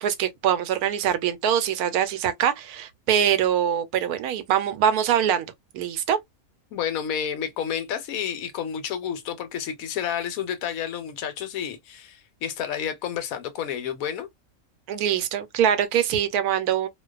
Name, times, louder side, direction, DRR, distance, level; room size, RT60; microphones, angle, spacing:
voice 1, 0.0-6.2 14.9-16.9, right 9 dB, 90° right, 1.1 m, -23 dB
voice 2, 6.7-14.3, left 8 dB, 75° left, 1.0 m, -30 dB
2.4 x 2.2 x 2.3 m
omnidirectional pair, 1.5 m